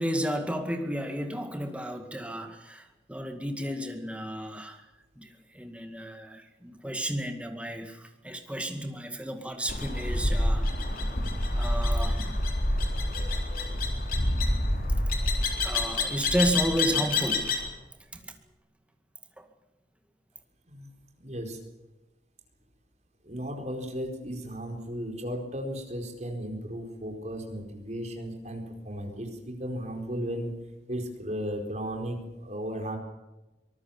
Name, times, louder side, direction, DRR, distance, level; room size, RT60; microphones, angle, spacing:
voice 1, 0.0-4.9 5.2-10.7 11.5-12.3 15.6-17.6 18.1-18.4 19.4-19.5, equal, 5° right, 5 dB, 2.1 m, -32 dB
sound 1, 9.7-17.7, left 2 dB, 50° left, 3.9 m, -27 dB
voice 2, 21.2-21.6 23.2-30.5 30.9-33.0, equal, 40° right, 3 dB, 4.6 m, -35 dB
24.5 x 19.5 x 7.3 m, 1.0 s
head